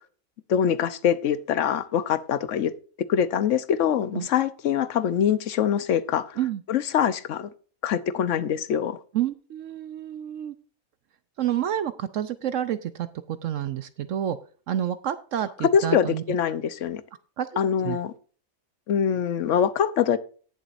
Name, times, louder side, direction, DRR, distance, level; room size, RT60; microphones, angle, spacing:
voice 1, 0.5-2.7 3.1-6.4 6.7-7.5 7.8-9.0 15.7-17.0 17.6-18.1 18.9-20.2, left 8 dB, 60° left, 14 dB, 1.1 m, -24 dB
voice 2, 9.1-10.5 11.4-14.4 14.7-16.2 17.4-18.0, right 10 dB, 65° right, 12 dB, 0.9 m, -29 dB
18.0 x 7.2 x 2.6 m, 0.40 s
omnidirectional pair, 1.5 m